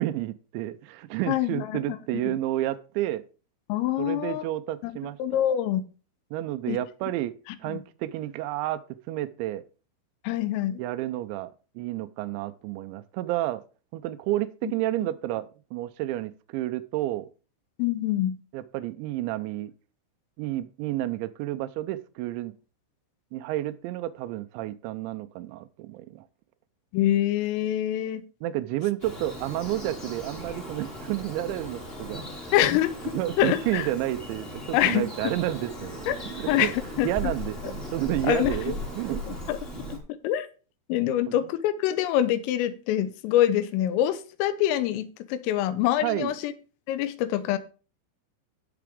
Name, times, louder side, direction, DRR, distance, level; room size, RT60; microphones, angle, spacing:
voice 1, 0.0-3.2 4.0-5.4 6.3-7.3 7.6-8.8 9.1-9.6 10.8-13.6 13.9-17.3 18.5-19.7 20.4-22.5 23.3-26.3 28.4-32.2 33.1-36.7 37.0-39.5 41.1-41.4 46.0-46.3, right 15 dB, 90° right, 2.6 m, -30 dB
voice 2, 1.3-2.4 3.7-4.4 4.8-4.9 5.2-5.8 6.7-6.8 7.7-7.8 10.2-10.8 14.6-14.7 17.8-18.4 26.9-28.2 32.5-32.9 33.4-33.9 34.7-35.3 36.1-36.2 36.5-36.7 37.0-37.1 38.2-38.7 39.5-39.6 39.9-40.0 40.2-40.5 40.9-46.5 46.9-47.6, left 12 dB, 85° left, 3.4 m, -25 dB
Bird vocalization bird call bird song, 29.0-40.0, equal, 20° left, 1.7 m, -38 dB
17.0 x 5.9 x 3.6 m
omnidirectional pair, 5.9 m